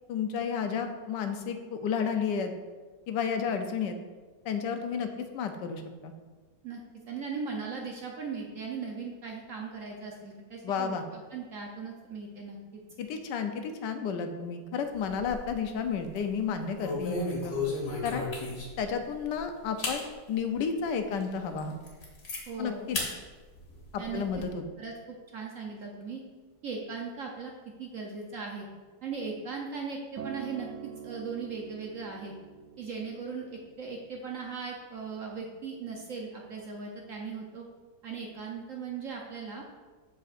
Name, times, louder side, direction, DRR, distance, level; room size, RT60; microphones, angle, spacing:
voice 1, 0.1-2.5 3.1-4.0 4.4-5.1 5.3-6.1 10.6-11.0 13.0-17.6 18.0-18.3 18.8-21.8 22.6-23.0 23.9-24.6, left 6 dB, 85° left, 6 dB, 1.3 m, -32 dB
voice 2, 7.1-12.8 22.5-22.9 24.0-24.2 24.8-24.9 25.3-26.2 26.6-27.5 27.8-28.7 29.0-30.7 31.0-32.3 32.8-37.6 38.0-39.6, right 5 dB, 60° right, 0 dB, 1.0 m, -38 dB
sound 1, 15.0-15.7 16.0-16.3 16.8-18.9 19.3-19.4 19.8-20.0 20.6-20.7 21.2-21.3 21.6-22.4 22.9-23.1 23.5-24.4, left 3 dB, 70° left, 1.8 m, -34 dB
Acoustic guitar, 30.2-34.5 35.3-35.4, right 7 dB, 75° right, 0.7 m, -45 dB
7.7 x 6.6 x 2.5 m, 1.3 s
omnidirectional pair, 1.8 m